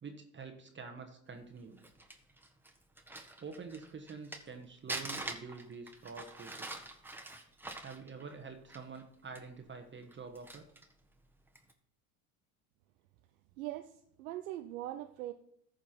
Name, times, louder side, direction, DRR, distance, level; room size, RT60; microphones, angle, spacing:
voice 1, 0.0-1.8 3.4-6.8 7.8-10.7, right 5 dB, 25° right, 5 dB, 1.3 m, -47 dB
Crumpling crinkling, 1.6-4.5 4.9-9.0 9.4-9.5 10.0-10.9 11.5-11.7, right 2 dB, 5° right, 1.4 m, -44 dB
voice 2, 13.6-15.3, right 14 dB, 80° right, 7 dB, 0.7 m, -41 dB
14.0 x 5.2 x 4.4 m, 0.73 s
hypercardioid pair, 75°, 41 cm